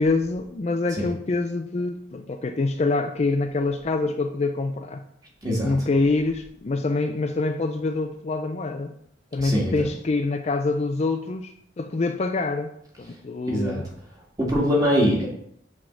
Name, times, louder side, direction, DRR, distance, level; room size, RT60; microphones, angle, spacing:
voice 1, 0.0-5.0 5.6-9.0 9.3-12.7 13.0-13.9, left 3 dB, 35° left, 6 dB, 0.4 m, -25 dB
voice 2, 5.4-5.7 9.4-9.7 13.5-13.8 14.4-15.3, equal, 20° right, -3 dB, 2.1 m, -22 dB
7.5 x 3.6 x 6.1 m, 0.68 s
head